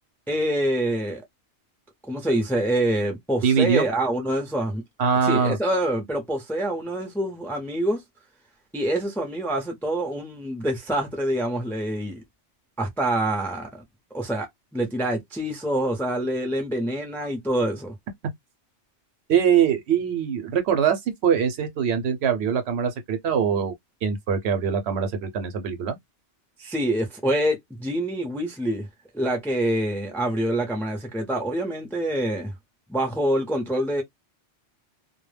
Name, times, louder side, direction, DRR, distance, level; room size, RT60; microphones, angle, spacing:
voice 1, 0.3-1.2 2.1-4.8 5.2-8.0 8.7-12.2 12.8-13.8 14.1-17.9 26.6-28.9 29.1-32.5 32.9-34.0, right 1 dB, 5° left, 0.4 m, -26 dB
voice 2, 3.4-3.9 5.0-5.6 19.3-23.7 24.0-26.0, right 7 dB, 70° right, 0.8 m, -22 dB
2.1 x 2.1 x 3.1 m
omnidirectional pair, 1.2 m